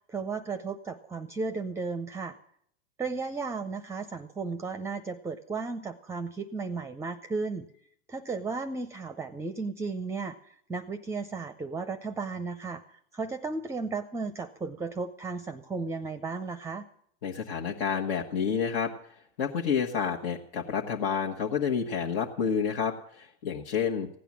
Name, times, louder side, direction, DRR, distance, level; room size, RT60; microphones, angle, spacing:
voice 1, 0.1-2.4 3.0-7.7 8.1-16.8, right 4 dB, 10° right, 11 dB, 0.6 m, -34 dB
voice 2, 17.2-18.9 19.4-24.1, left 7 dB, 65° left, -1 dB, 1.5 m, -29 dB
16.0 x 9.2 x 7.4 m, 0.69 s
hypercardioid pair, 115°, 31 cm